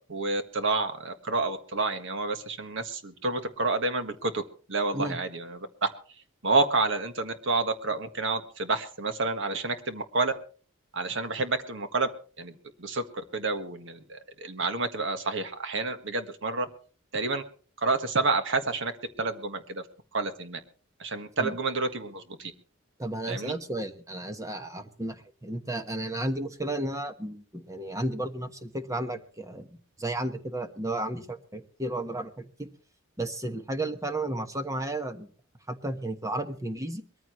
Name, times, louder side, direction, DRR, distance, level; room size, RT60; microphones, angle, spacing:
voice 1, 0.1-4.4 4.7-5.9 6.4-10.3 10.9-12.1 12.4-13.0 13.3-16.6 17.1-17.4 17.8-18.9 19.2-19.8 20.1-20.6 21.0-22.5 23.3-23.6, right 3 dB, 65° right, 8 dB, 1.6 m, -29 dB
voice 2, 23.0-32.7 33.2-35.3 35.7-37.0, right 1 dB, 15° right, 7 dB, 1.2 m, -33 dB
22.0 x 14.0 x 3.1 m, 0.41 s
head